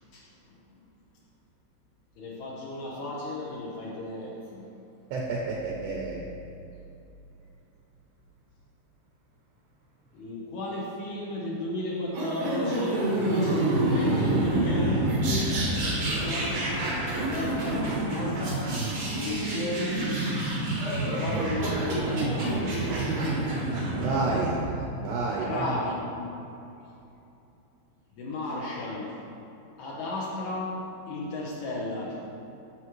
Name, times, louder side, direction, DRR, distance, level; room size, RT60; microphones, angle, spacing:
voice 1, 0.1-0.6 2.2-4.7 10.1-13.0 13.3-15.6 15.9-18.6 19.1-20.1 20.8-23.0 25.3-26.0 28.1-29.2 29.8-32.2, left 2 dB, 75° left, -5 dB, 2.3 m, -35 dB
voice 2, 5.1-6.2 24.0-24.5 25.0-25.8, right 3 dB, 90° right, -3 dB, 2.2 m, -29 dB
sound 1, 12.1-24.8, right 1 dB, 70° right, 1.6 m, -27 dB
11.0 x 7.2 x 3.1 m, 2.8 s
omnidirectional pair, 5.7 m